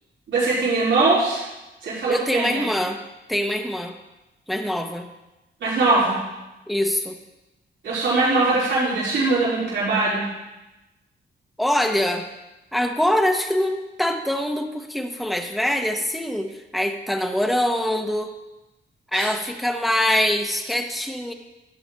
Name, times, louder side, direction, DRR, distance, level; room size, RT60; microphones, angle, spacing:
voice 1, 0.3-1.4 1.8-2.6 5.6-6.2 7.8-10.3 19.1-19.3, right 3 dB, 85° right, -9 dB, 4.6 m, -21 dB
voice 2, 2.1-3.0 3.3-3.9 4.5-5.1 6.7-7.2 11.6-12.3 12.7-18.3 19.1-21.3, left 1 dB, ahead, 4 dB, 0.9 m, -24 dB
12.5 x 4.9 x 8.7 m, 1.0 s
cardioid pair, 115°, 19 cm